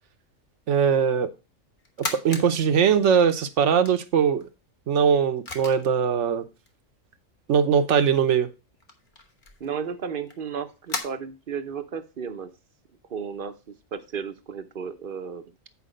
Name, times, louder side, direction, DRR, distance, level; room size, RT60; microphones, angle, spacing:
voice 1, 0.7-1.3 2.0-4.5 4.9-6.5 7.5-8.5, right 7 dB, 65° right, 10 dB, 1.1 m, -21 dB
sound 1, 1.8-2.5 2.9-4.4 5.2-5.3 5.4-5.9 6.7-6.8 8.0-8.1 8.4-8.5 8.8-11.0, left 2 dB, 40° left, 1.4 m, -36 dB
voice 2, 9.6-12.5 13.1-15.4, right 6 dB, 50° right, 9 dB, 0.9 m, -34 dB
8.4 x 5.0 x 5.1 m, 0.29 s
omnidirectional pair, 1.3 m